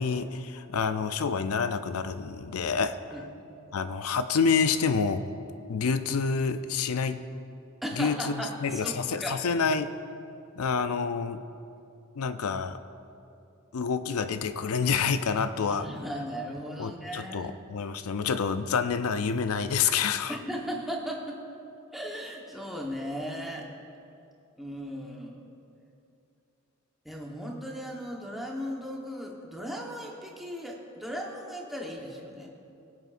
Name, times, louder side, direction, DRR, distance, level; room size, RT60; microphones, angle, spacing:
voice 1, 0.0-3.0 3.7-5.3 5.7-7.2 8.0-9.9 10.6-11.4 12.2-12.8 13.7-15.9 16.8-20.4, left 5 dB, 80° left, 11 dB, 0.5 m, -28 dB
voice 2, 7.8-9.3 15.7-17.5 20.3-21.4 21.9-23.7 24.6-25.4 27.0-32.5, equal, ahead, -2 dB, 1.1 m, -37 dB
21.0 x 7.9 x 2.5 m, 2.7 s
head